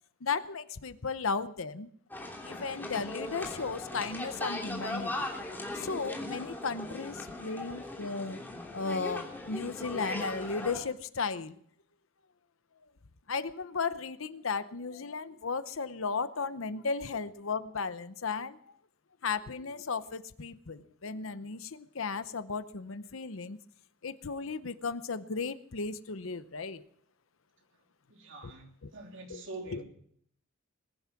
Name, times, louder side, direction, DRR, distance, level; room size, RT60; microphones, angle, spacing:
voice 1, 0.2-1.9 2.4-5.1 5.7-8.4 8.7-11.6 13.3-18.7 19.2-23.6 24.0-26.8 28.4-28.5 28.8-28.9 29.3-29.4 29.7-29.8, left 4 dB, 75° left, 0.8 m, -35 dB
sound 1, 2.1-10.8, left 2 dB, 10° left, 3.0 m, -39 dB
voice 2, 28.1-29.8, right 2 dB, 60° right, 3.1 m, -45 dB
21.0 x 10.5 x 6.0 m
head